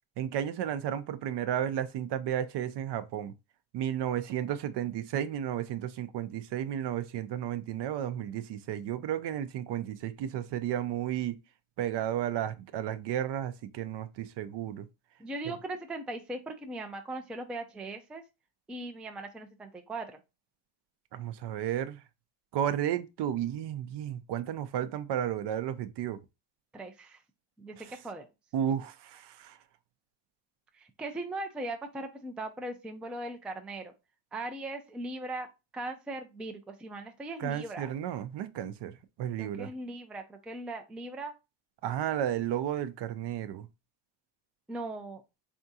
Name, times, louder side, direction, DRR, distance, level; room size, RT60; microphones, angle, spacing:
voice 1, 0.2-3.3 3.7-11.4 11.8-14.9 21.1-22.0 22.5-26.2 27.8-28.0 28.5-29.6 37.4-39.7 41.8-43.7, right 10 dB, 60° right, 0.6 m, -33 dB
voice 2, 15.2-18.2 18.7-20.2 26.7-27.2 27.6-27.8 28.0-28.3 30.7-33.9 34.3-35.5 35.7-37.9 39.4-41.4 44.7-45.2, right 2 dB, ahead, 0.3 m, -39 dB
3.6 x 3.5 x 2.7 m
cardioid pair, 105°, 48 cm